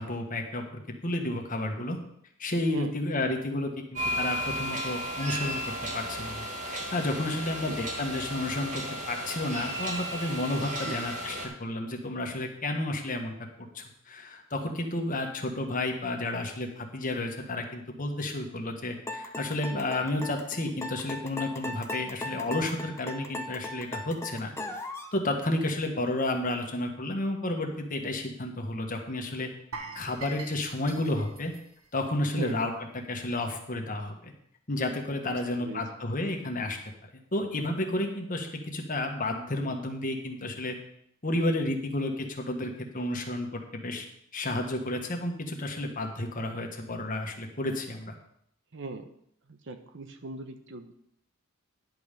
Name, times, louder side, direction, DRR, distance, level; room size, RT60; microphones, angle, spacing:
voice 1, 0.0-2.0 2.4-5.6 5.9-13.3 13.7-24.5 25.1-29.5 29.9-31.5 31.9-32.7 33.1-34.3 34.7-36.8 37.3-40.8 41.2-44.1 44.3-48.1, left 1 dB, 40° left, 3 dB, 1.5 m, -31 dB
sound 1, 3.9-11.5, equal, 35° right, 2.3 m, -34 dB
sound 2, 19.1-25.1, left 2 dB, 15° left, 0.8 m, -37 dB
sound 3, 29.7-32.7 33.0-33.2 33.7-33.8, right 3 dB, 90° right, 1.5 m, -44 dB
voice 2, 35.3-35.8 48.7-49.1 49.5-50.9, right 3 dB, 60° right, 7 dB, 1.0 m, -39 dB
10.5 x 5.5 x 6.7 m, 0.72 s
head